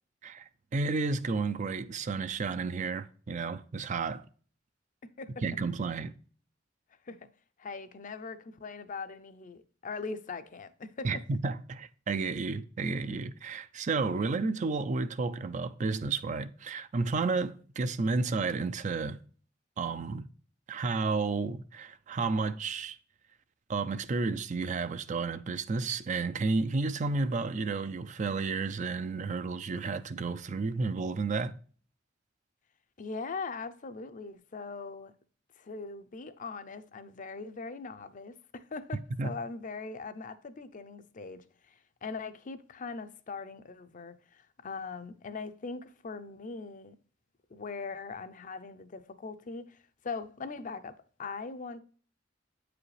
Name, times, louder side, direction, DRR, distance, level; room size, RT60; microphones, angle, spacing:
voice 1, 0.2-4.3 5.4-6.1 11.0-19.2 19.8-20.3 20.7-23.0 23.7-31.5 39.2-39.3, right 4 dB, 40° right, 0.4 m, -32 dB
voice 2, 5.0-5.3 7.1-7.3 7.6-11.1 33.0-35.1 35.6-47.0 47.5-49.8 50.0-51.8, left 4 dB, 45° left, 0.5 m, -41 dB
8.6 x 4.9 x 3.2 m
head